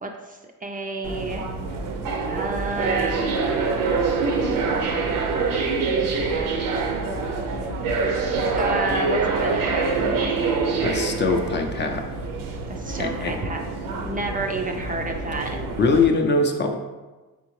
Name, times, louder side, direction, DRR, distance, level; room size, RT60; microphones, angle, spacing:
voice 1, 0.0-1.5 2.3-3.4 8.6-10.0 12.7-13.6 14.0-15.6, right 2 dB, 25° right, 2 dB, 0.4 m, -30 dB
sound 1, 1.0-16.1, right 4 dB, 75° right, 0.6 m, -25 dB
voice 2, 10.8-12.0 13.0-13.3 15.8-16.8, left 3 dB, 35° left, 4 dB, 0.4 m, -22 dB
3.6 x 3.4 x 3.1 m, 1.2 s
cardioid pair, 85°, 34 cm